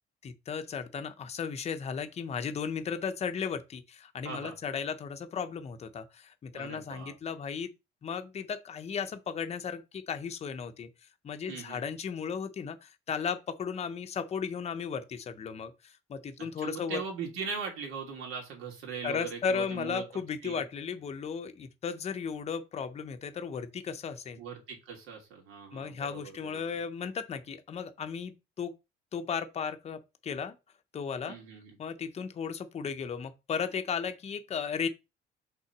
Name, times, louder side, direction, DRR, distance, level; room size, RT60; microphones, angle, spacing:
voice 1, 0.2-7.7 8.0-10.9 11.2-17.0 19.0-24.4 25.7-28.7 29.1-30.6 30.9-31.4 31.8-34.9, left 6 dB, 30° left, 0.7 m, -35 dB
voice 2, 4.2-4.6 6.5-7.1 11.5-11.8 16.4-20.6 24.4-26.7 31.3-31.7, right 6 dB, 85° right, 2.8 m, -40 dB
5.8 x 3.7 x 5.9 m
cardioid pair, 150°, 21 cm